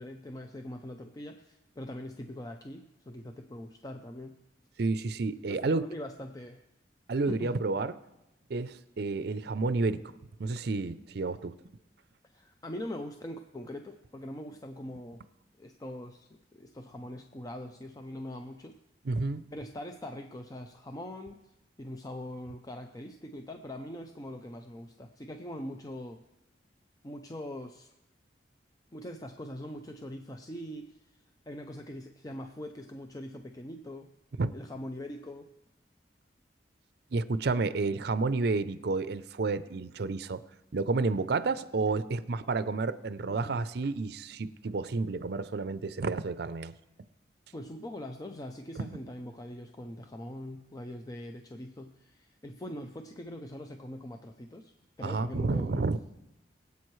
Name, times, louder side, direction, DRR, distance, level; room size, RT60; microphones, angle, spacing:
voice 1, 0.0-4.4 5.5-6.6 7.3-7.6 12.3-15.2 15.6-18.8 19.5-21.4 21.8-26.2 27.0-27.9 28.9-34.1 34.5-35.5 43.3-43.6 47.5-55.8, left 1 dB, 20° left, 5 dB, 0.5 m, -42 dB
voice 2, 4.8-5.9 7.1-7.9 8.5-10.0 10.4-11.5 19.0-19.4 34.4-34.5 37.1-40.4 40.7-46.7 48.8-48.9 55.0-56.0, right 3 dB, 65° right, 14 dB, 0.5 m, -30 dB
22.5 x 8.2 x 3.2 m, 0.93 s
head